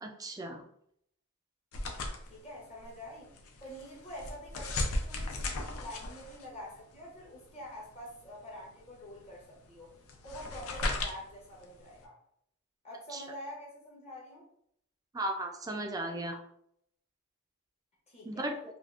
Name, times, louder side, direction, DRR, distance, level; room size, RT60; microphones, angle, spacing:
voice 1, 0.0-0.6 13.1-13.2 15.1-16.4 18.3-18.5, right 1 dB, 15° right, 4 dB, 0.3 m, -36 dB
sound 1, 1.7-12.0, left 2 dB, 65° left, 0.5 m, -38 dB
voice 2, 2.3-3.3 3.6-9.9 10.2-12.2 12.8-14.4 18.1-18.4, equal, 30° left, -3 dB, 0.7 m, -46 dB
3.5 x 2.3 x 2.3 m, 0.72 s
head